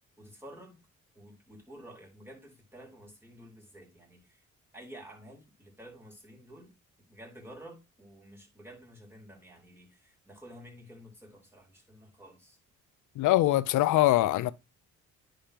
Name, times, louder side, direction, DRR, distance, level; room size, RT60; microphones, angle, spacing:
voice 1, 0.2-0.8 1.1-4.5 4.7-6.7 7.1-12.6, equal, 10° right, 4.2 m, -51 dB
voice 2, 13.2-14.5, left 16 dB, 80° left, 0.6 m, -23 dB
10.0 x 5.2 x 2.9 m
cardioid pair, 90°, 30 cm